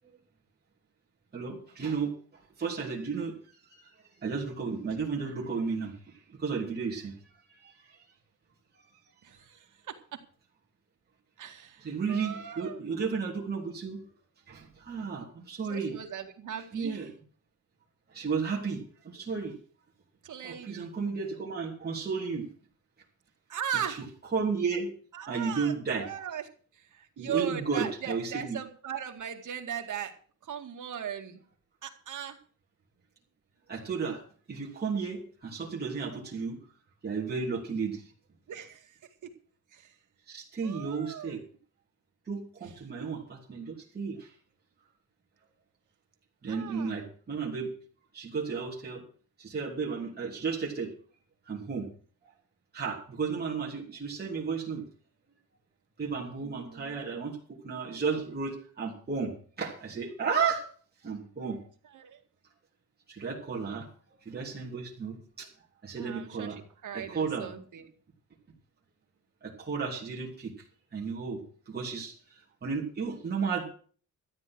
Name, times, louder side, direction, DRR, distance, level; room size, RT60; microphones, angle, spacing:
voice 1, 1.3-3.3 3.7-3.9 4.2-7.1 7.5-8.0 11.8-14.0 14.5-15.9 16.7-17.1 18.1-19.5 20.4-22.5 24.3-24.9 25.3-26.1 27.2-28.6 33.7-34.2 34.5-36.6 37.0-38.1 40.3-41.4 42.3-44.3 46.4-47.7 48.1-49.0 49.4-50.9 51.5-51.9 52.7-54.8 56.0-60.7 61.0-61.6 63.1-63.9 64.2-65.5 65.8-66.6 66.9-67.5 69.4-70.5 70.9-71.4 71.7-73.6, right 5 dB, 30° right, -3 dB, 3.1 m, -33 dB
voice 2, 9.2-10.2 11.4-12.8 15.6-17.1 20.2-20.9 23.5-24.0 25.1-30.1 30.4-31.4 31.8-32.4 38.5-39.3 39.7-40.0 40.6-41.4 42.6-42.7 43.0-43.1 46.5-47.0 56.4-57.0 61.8-62.2 66.0-67.9, right 9 dB, 70° right, 4 dB, 2.2 m, -39 dB
13.0 x 9.8 x 6.2 m, 0.43 s
wide cardioid pair, 170°, 31 cm